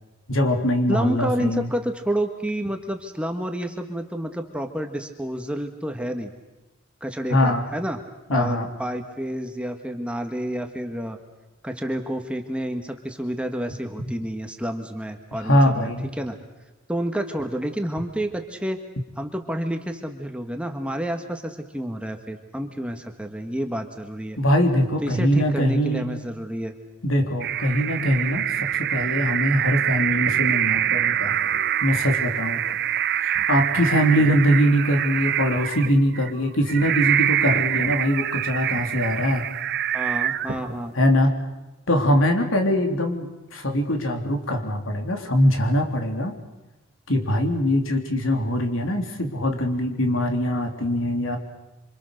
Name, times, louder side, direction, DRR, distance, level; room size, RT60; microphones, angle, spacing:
voice 1, 0.3-1.7 7.3-7.6 8.3-8.7 15.4-16.1 24.4-26.0 27.0-31.4 31.8-32.7 33.2-39.5 41.0-41.3 41.9-46.4 47.1-51.4, equal, 70° left, 4 dB, 3.5 m, -22 dB
voice 2, 0.9-6.3 7.0-8.0 8.3-11.2 11.6-15.9 16.2-16.4 16.9-18.8 19.2-24.4 25.0-26.7 34.2-34.3 39.9-40.9, right 1 dB, 5° right, 5 dB, 1.6 m, -29 dB
sound 1, 27.4-40.9, right 10 dB, 50° right, 0.9 m, -25 dB
27.5 x 25.5 x 6.6 m, 1.0 s
head